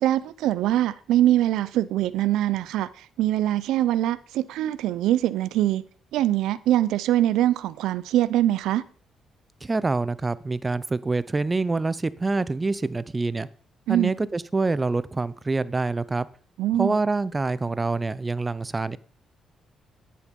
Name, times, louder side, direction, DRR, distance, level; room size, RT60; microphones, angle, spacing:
voice 1, 0.0-5.8 6.1-8.8 13.9-14.1 16.6-16.9, right 13 dB, 90° right, 0.6 m, -23 dB
voice 2, 9.6-13.5 13.9-16.3 16.8-19.0, right 3 dB, 20° right, 0.7 m, -26 dB
10.5 x 10.5 x 5.3 m
cardioid pair, 90°, 0 cm